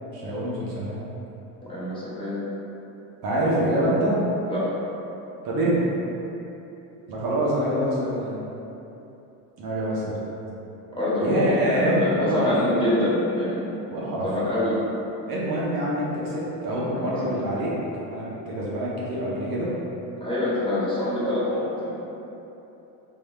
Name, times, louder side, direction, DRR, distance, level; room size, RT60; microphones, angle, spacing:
voice 1, 0.1-1.0 3.2-4.2 5.4-5.9 7.1-8.5 9.6-10.2 11.2-12.5 13.9-14.3 15.3-17.7 18.1-19.7, right 1 dB, 55° right, -6 dB, 0.9 m, -25 dB
voice 2, 1.6-2.4 4.5-4.7 10.9-13.7 14.2-14.7 16.9-17.3 20.2-21.9, left 1 dB, 10° left, -10 dB, 1.2 m, -25 dB
3.7 x 3.0 x 2.3 m, 3.0 s
supercardioid pair, 85°, 44 cm